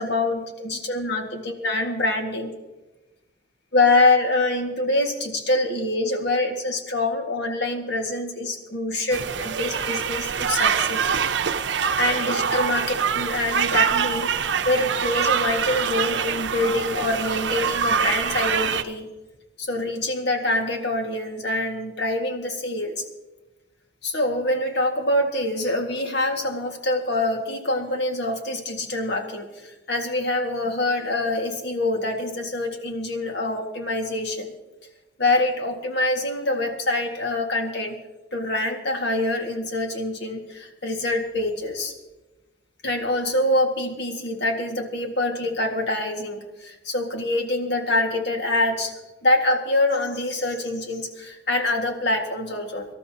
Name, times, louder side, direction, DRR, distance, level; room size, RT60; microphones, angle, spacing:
voice 1, 0.0-2.5 3.7-9.2 9.4-11.1 12.0-14.3 14.7-19.1 19.6-23.0 24.0-34.5 35.2-37.9 38.3-41.9 42.8-48.9 49.2-52.9, left 2 dB, 70° left, 3 dB, 1.9 m, -25 dB
sound 1, 9.1-18.8, right 6 dB, 90° right, 0.7 m, -24 dB
25.0 x 12.5 x 2.9 m, 1.1 s
head